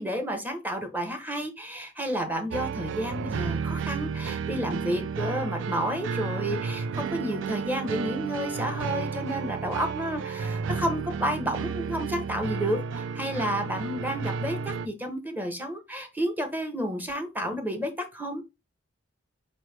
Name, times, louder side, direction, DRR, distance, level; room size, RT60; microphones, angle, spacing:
voice 1, 0.0-18.4, equal, 10° right, 5 dB, 0.7 m, -31 dB
sound 1, 2.5-14.9, right 5 dB, 65° right, 0.3 m, -32 dB
4.5 x 3.1 x 3.2 m, 0.24 s
head